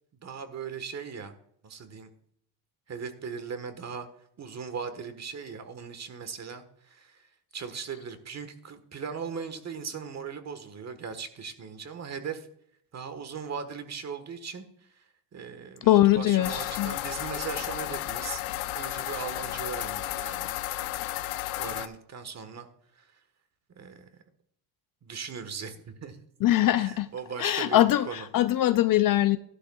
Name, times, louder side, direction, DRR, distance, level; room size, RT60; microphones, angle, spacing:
voice 1, 0.2-1.3 1.6-2.1 2.9-4.1 4.4-12.5 12.9-15.0 15.3-18.4 18.7-20.5 21.6-22.7 22.9-23.2 23.7-24.1 25.0-26.2 26.8-28.3, right 6 dB, 35° right, 1.3 m, -38 dB
voice 2, 15.8-17.0 26.4-27.1 27.4-29.4, left 14 dB, 45° left, 0.5 m, -22 dB
sound 1, 16.4-21.9, left 15 dB, 80° left, 0.8 m, -33 dB
13.0 x 11.5 x 2.3 m
cardioid pair, 120°, 48 cm